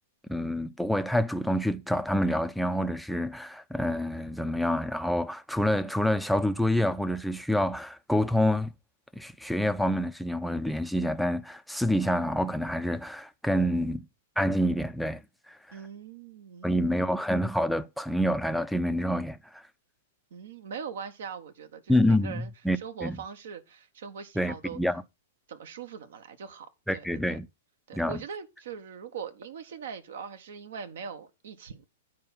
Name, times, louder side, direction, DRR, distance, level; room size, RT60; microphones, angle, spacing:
voice 1, 0.3-8.7 9.2-14.1 14.4-15.2 16.6-19.6 21.9-23.2 24.4-25.0 26.9-27.5 27.9-28.2, equal, ahead, 0.5 m, -27 dB
voice 2, 15.7-17.0 20.3-24.8 25.5-27.4 27.9-31.8, right 6 dB, 65° right, 1.2 m, -41 dB
9.3 x 4.8 x 5.7 m
hypercardioid pair, 110°, 0 cm